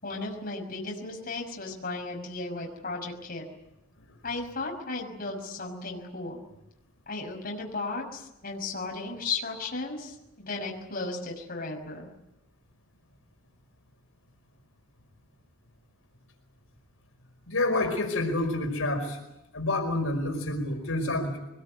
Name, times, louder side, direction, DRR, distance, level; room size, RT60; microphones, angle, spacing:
voice 1, 0.0-3.5 4.2-6.4 7.1-12.1, left 3 dB, 45° left, 1 dB, 6.0 m, -35 dB
voice 2, 17.5-19.2 19.5-21.4, left 2 dB, 80° left, 3 dB, 5.3 m, -28 dB
24.0 x 21.5 x 9.4 m, 0.91 s
head